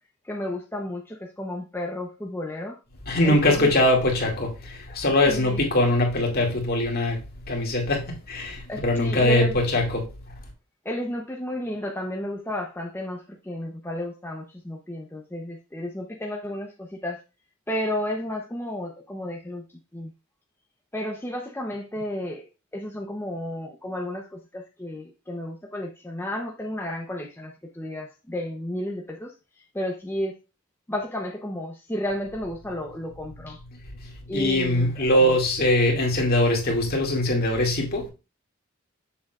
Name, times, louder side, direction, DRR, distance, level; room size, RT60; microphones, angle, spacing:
voice 1, 0.2-2.8 3.2-3.9 5.3-5.6 8.7-9.6 10.8-17.2 17.7-19.6 19.9-20.1 20.9-22.5 22.7-29.3 29.7-30.3 30.9-33.6 34.3-35.3, left 1 dB, 10° left, 0.7 m, -32 dB
voice 2, 3.1-7.2 7.5-10.1 34.0-38.1, left 1 dB, 45° left, 2.2 m, -22 dB
7.4 x 6.9 x 2.4 m
head